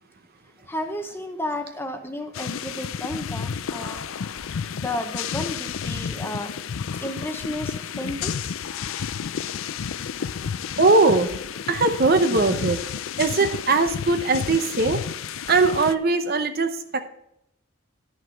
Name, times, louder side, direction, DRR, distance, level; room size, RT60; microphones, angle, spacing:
voice 1, 0.7-4.0 4.8-6.5 6.9-8.5, left 1 dB, 10° left, 5 dB, 0.9 m, -32 dB
sound 1, 2.3-15.9, left 7 dB, 75° left, 0.4 m, -31 dB
voice 2, 10.8-11.3 11.7-12.8 13.2-15.0 15.5-17.1, right 3 dB, 45° right, 7 dB, 0.8 m, -20 dB
11.5 x 6.2 x 4.6 m, 0.79 s
head